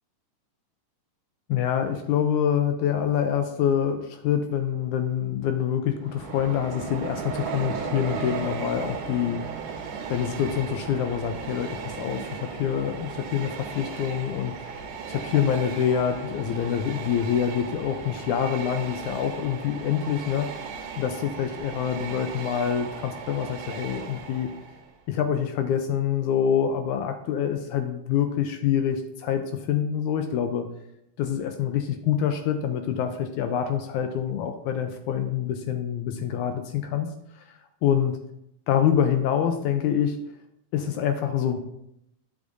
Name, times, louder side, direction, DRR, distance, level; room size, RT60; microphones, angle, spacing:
voice 1, 1.5-9.4 10.1-14.8 15.1-24.5 25.1-30.7 31.2-37.1 37.4-37.5 37.8-38.2 38.7-40.2 40.7-41.6, left 9 dB, 80° left, 7 dB, 1.9 m, -26 dB
Train, 6.0-24.9, right 6 dB, 80° right, 2.3 m, -36 dB
9.6 x 7.2 x 2.6 m, 0.80 s
omnidirectional pair, 3.7 m